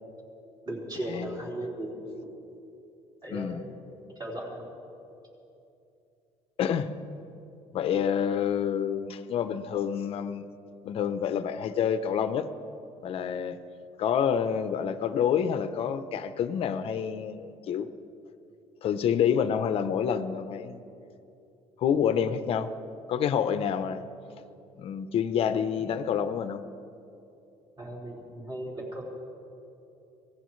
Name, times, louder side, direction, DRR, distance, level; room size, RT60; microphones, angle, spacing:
voice 1, 0.6-2.3 3.2-3.6 4.2-4.7 27.8-29.1, right 1 dB, 30° right, -4 dB, 4.5 m, -37 dB
voice 2, 3.3-3.6 6.6-6.9 7.7-10.5 10.8-12.5 13.0-13.6 14.0-17.9 18.8-20.8 21.8-22.7 23.1-24.0 24.8-26.6, left 8 dB, 50° left, 11 dB, 0.7 m, -28 dB
25.5 x 18.0 x 3.2 m, 2.8 s
cardioid pair, 160°, 13 cm